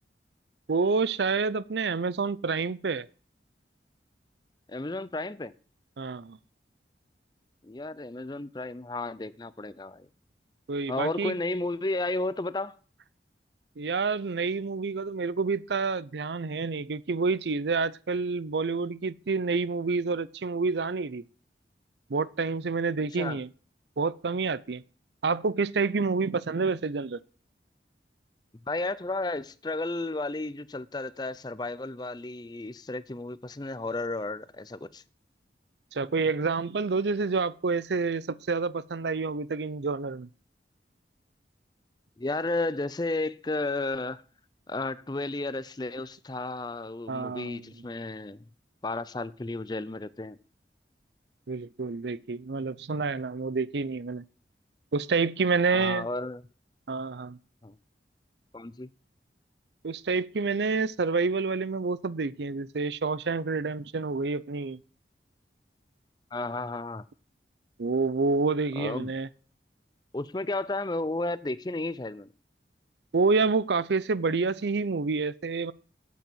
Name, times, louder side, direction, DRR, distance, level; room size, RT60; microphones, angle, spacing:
voice 1, 0.7-3.1 6.0-6.4 10.7-11.3 13.8-21.2 22.1-23.5 24.0-24.8 25.2-27.2 35.9-40.3 47.1-47.7 51.5-54.2 54.9-56.1 56.9-57.4 59.8-64.8 67.8-69.3 73.1-75.7, right 4 dB, 80° right, 0.6 m, -28 dB
voice 2, 4.7-5.5 7.6-10.1 10.9-12.7 23.1-23.4 28.7-35.0 42.2-44.2 44.7-48.4 48.8-50.4 55.7-56.4 57.6-57.7 58.5-58.9 66.3-67.1 68.8-69.1 70.1-72.3, left 2 dB, 25° left, 0.5 m, -33 dB
8.6 x 8.5 x 7.9 m
head